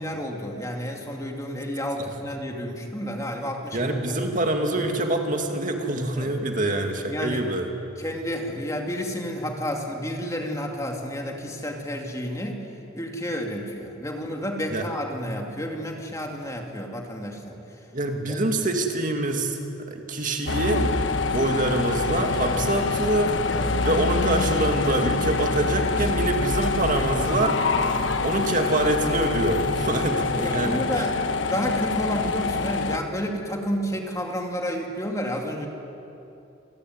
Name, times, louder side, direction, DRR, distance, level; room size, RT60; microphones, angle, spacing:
voice 1, 0.0-3.9 6.2-6.3 7.0-7.4 8.0-12.6 12.9-17.6 18.3-18.4 22.4-22.8 23.5-23.7 27.8-28.1 30.4-31.1 31.4-35.7, equal, 15° left, 1 dB, 2.5 m, -31 dB
voice 2, 3.7-7.7 14.7-14.8 17.9-19.6 19.9-20.9 21.3-23.4 23.8-27.6 28.2-31.0, right 2 dB, 40° right, 3 dB, 2.3 m, -25 dB
sound 1, 20.5-33.0, left 3 dB, 65° left, 1.3 m, -25 dB
27.5 x 19.0 x 9.5 m, 2.9 s
head